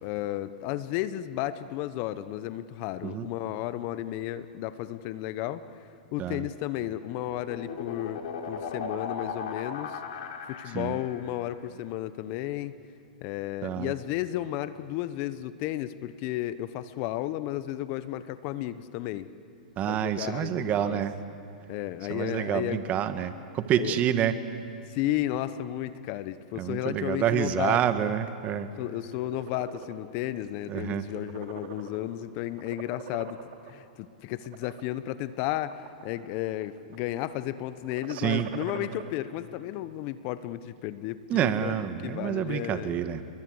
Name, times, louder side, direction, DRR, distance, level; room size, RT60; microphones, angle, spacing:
voice 1, 0.0-10.0 10.5-12.8 13.2-19.3 19.8-21.0 21.7-22.8 23.8-24.0 24.9-28.1 28.8-43.0, left 14 dB, 45° left, 14 dB, 1.1 m, -33 dB
sound 1, 6.5-11.3, left 5 dB, 70° left, 3.5 m, -37 dB
voice 2, 13.6-13.9 19.8-21.2 22.1-24.4 26.6-28.7 30.7-31.0 38.1-38.5 41.3-43.2, right 10 dB, 30° right, 10 dB, 1.6 m, -28 dB
sound 2, 29.0-30.0 30.4-30.7 31.0-32.2 32.6-33.7 34.3-34.8 35.4-36.2 36.4-37.0 37.8-39.1, right 8 dB, 55° right, 2.8 m, -43 dB
29.5 x 23.0 x 8.1 m, 2.6 s
hypercardioid pair, 120°, 5 cm